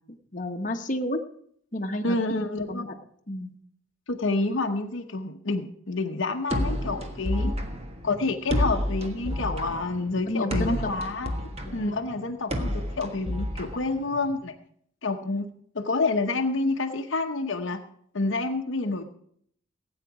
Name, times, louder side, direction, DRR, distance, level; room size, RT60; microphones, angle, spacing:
voice 1, 0.3-1.2 1.7-2.2 2.7-2.9 3.3-3.5 7.4-7.7 10.3-10.8 11.6-12.0, left 1 dB, 40° left, 4 dB, 1.0 m, -31 dB
voice 2, 2.0-2.9 4.1-7.5 8.0-11.3 11.7-14.5 15.0-15.5 15.7-17.8 18.1-19.1, left 3 dB, 60° left, 5 dB, 0.9 m, -28 dB
sound 1, 6.5-14.4, equal, 30° right, 1.4 m, -30 dB
17.0 x 8.9 x 4.8 m, 0.65 s
head